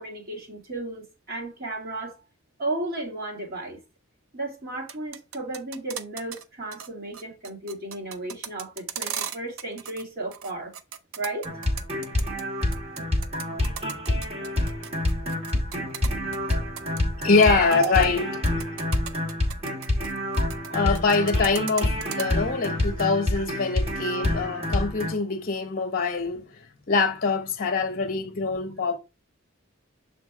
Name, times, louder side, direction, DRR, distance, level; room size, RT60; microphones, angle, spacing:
voice 1, 0.0-2.2 2.6-3.8 4.3-10.7 11.2-11.5 14.1-14.2 17.7-17.9 22.0-22.1 23.3-23.4, right 2 dB, 50° right, 2.1 m, -34 dB
sound 1, 4.7-6.4 6.7-6.9 7.1-10.0 10.3-12.4 12.7-17.5 17.7-18.1 18.5-20.7 20.9-22.2, right 8 dB, 90° right, 0.6 m, -36 dB
sound 2, 11.4-25.1, left 1 dB, 30° right, 1.5 m, -27 dB
voice 2, 17.2-18.3 20.7-26.4 26.9-29.0, left 4 dB, 45° left, 0.8 m, -24 dB
6.9 x 3.8 x 3.5 m
head